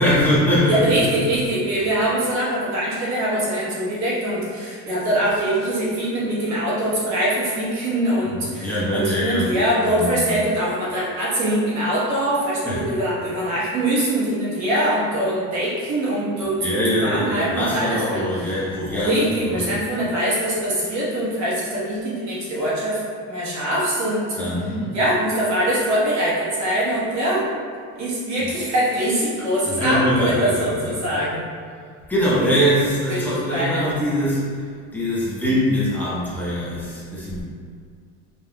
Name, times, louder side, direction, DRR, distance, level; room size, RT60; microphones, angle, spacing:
voice 1, 0.0-1.2 8.2-9.5 9.9-10.4 12.6-12.8 16.4-19.7 24.4-24.9 28.4-28.5 29.6-30.6 32.1-34.6 34.9-37.4, equal, 5° left, -8 dB, 0.8 m, -22 dB
voice 2, 0.7-18.3 18.9-24.3 24.9-27.5 28.0-31.4 33.1-33.9, right 1 dB, 50° right, -7 dB, 1.3 m, -23 dB
5.3 x 3.4 x 2.3 m, 2.1 s
cardioid pair, 170°, 35 cm